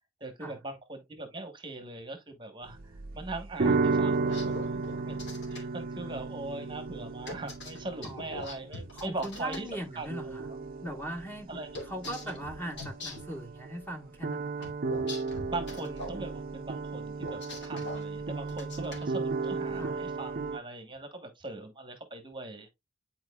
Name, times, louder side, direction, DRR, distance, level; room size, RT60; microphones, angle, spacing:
voice 1, 0.2-5.2 5.5-9.6 9.9-10.1 11.5-11.7 12.2-12.3 15.5-22.7, right 2 dB, 25° right, 1.1 m, -40 dB
sound 1, 2.7-13.9 14.2-20.6, right 4 dB, 45° right, 0.5 m, -34 dB
sound 2, 4.1-5.6 7.3-9.6 11.7-13.3 14.6-16.2 17.2-18.0 18.5-19.0, left 2 dB, 55° left, 2.6 m, -42 dB
voice 2, 8.0-8.6 8.9-10.5 10.8-14.7 19.7-20.0, right 1 dB, 10° left, 1.4 m, -40 dB
10.5 x 4.4 x 2.3 m
head